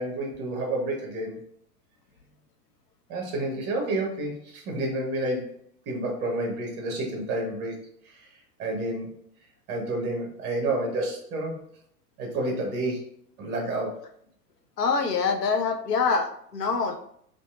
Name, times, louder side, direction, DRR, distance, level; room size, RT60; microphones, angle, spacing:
voice 1, 0.0-1.4 3.1-5.5 5.9-7.8 8.1-8.3 8.6-9.2 9.7-11.6 12.2-13.1 13.4-14.0, right 2 dB, 25° right, 1 dB, 0.7 m, -30 dB
voice 2, 14.8-17.0, left 5 dB, 85° left, 5 dB, 0.5 m, -25 dB
2.7 x 2.4 x 2.3 m, 0.68 s
figure-of-eight pair, 95°, 47 cm